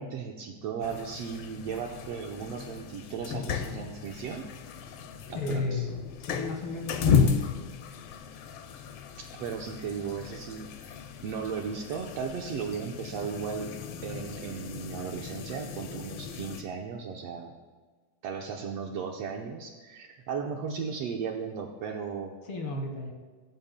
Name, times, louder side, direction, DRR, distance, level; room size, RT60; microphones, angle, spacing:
voice 1, 0.0-4.5 5.3-5.9 9.2-11.0 11.2-17.5 18.2-22.4, right 6 dB, 75° right, 2 dB, 1.5 m, -36 dB
sound 1, 0.8-16.6, left 6 dB, 80° left, 1.4 m, -34 dB
voice 2, 5.3-7.5 22.4-23.1, left 2 dB, 50° left, 3 dB, 2.2 m, -34 dB
16.5 x 14.5 x 2.2 m, 1.4 s
omnidirectional pair, 3.7 m